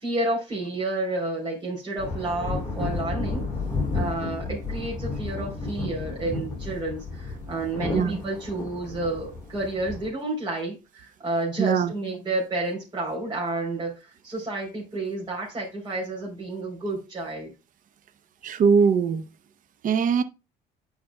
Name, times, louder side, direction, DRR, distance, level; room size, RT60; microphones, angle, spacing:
voice 1, 0.0-3.4 3.9-17.5, right 2 dB, 25° right, 3.5 m, -30 dB
sound 1, 2.0-10.1, left 3 dB, 15° left, 4.5 m, -32 dB
voice 2, 11.6-11.9 18.4-19.2 19.8-20.2, right 6 dB, 50° right, 0.7 m, -21 dB
10.5 x 5.1 x 2.2 m
cardioid pair, 110°, 17 cm